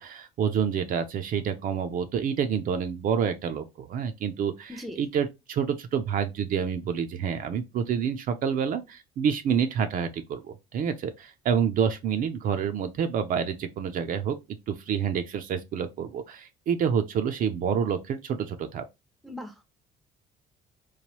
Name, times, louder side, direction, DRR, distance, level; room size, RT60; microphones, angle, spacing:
voice 1, 0.0-14.4 14.7-18.8, right 7 dB, 55° right, 0.5 m, -28 dB
voice 2, 4.7-5.0 19.2-19.7, left 1 dB, ahead, 0.5 m, -39 dB
3.1 x 2.2 x 2.9 m
cardioid pair, 110°, 17 cm